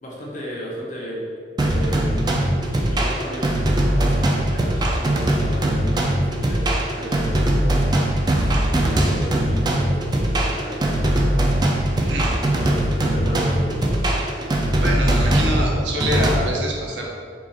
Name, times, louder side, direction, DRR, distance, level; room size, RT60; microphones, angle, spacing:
voice 1, 0.0-1.2 1.6-7.9 8.7-11.5 12.5-14.0, equal, 45° left, -5 dB, 1.0 m, -35 dB
sound 1, 1.6-16.4, right 1 dB, 25° right, 0.4 m, -20 dB
voice 2, 12.0-12.4 14.8-17.1, right 1 dB, 75° right, -2 dB, 0.8 m, -25 dB
4.7 x 2.5 x 4.1 m, 2.1 s
head